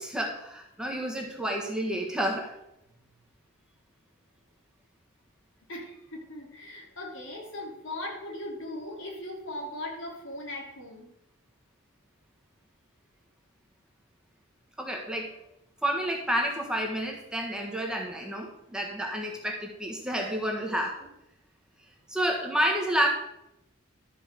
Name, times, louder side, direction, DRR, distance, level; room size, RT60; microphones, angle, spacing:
voice 1, 0.0-2.5 14.8-15.3 15.8-21.1 22.1-23.1, right 1 dB, 5° right, 0 dB, 1.5 m, -30 dB
voice 2, 5.7-11.1, left 1 dB, 70° left, -1 dB, 3.2 m, -39 dB
12.5 x 5.3 x 6.6 m, 0.84 s
head